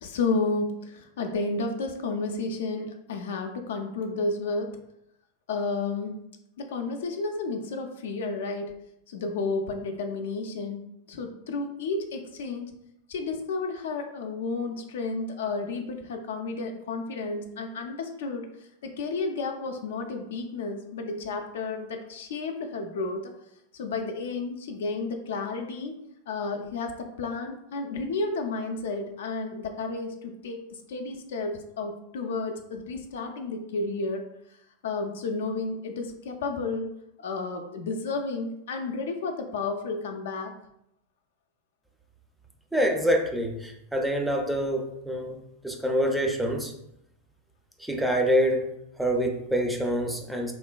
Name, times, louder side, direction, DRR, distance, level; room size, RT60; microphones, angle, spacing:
voice 1, 0.0-4.7 5.5-6.2 6.6-8.7 9.1-10.8 11.1-12.7 13.1-23.3 23.7-25.9 26.3-34.2 34.8-36.9 37.2-40.5, left 3 dB, 65° left, 5 dB, 0.3 m, -32 dB
voice 2, 42.7-46.7 47.8-50.5, equal, 5° right, 2 dB, 0.4 m, -26 dB
3.0 x 2.1 x 2.3 m, 0.79 s
hypercardioid pair, 95°, 0 cm